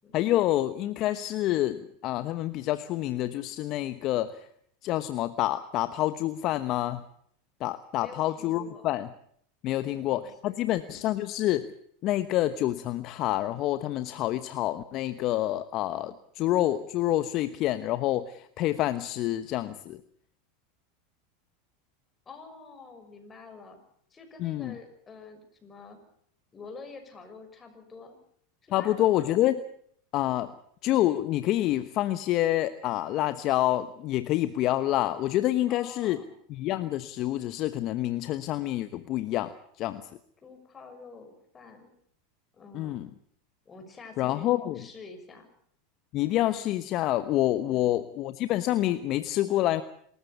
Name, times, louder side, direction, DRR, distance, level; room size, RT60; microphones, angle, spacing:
voice 1, 0.1-4.5 4.8-7.0 7.6-9.1 9.6-11.7 12.0-20.0 24.4-24.7 28.7-29.6 30.1-30.5 30.8-36.2 36.5-39.5 39.8-40.0 42.7-43.1 44.2-44.8 46.1-49.8, left 14 dB, 50° left, 12 dB, 1.0 m, -27 dB
voice 2, 8.0-8.9 9.7-10.6 10.9-11.0 22.3-23.8 24.1-26.0 26.5-28.2 28.6-29.3 35.7-36.3 40.4-41.9 42.5-43.0 43.6-45.5 47.6-48.0, left 4 dB, 25° left, 6 dB, 6.3 m, -48 dB
26.5 x 14.0 x 8.4 m, 0.65 s
hypercardioid pair, 105°, 0 cm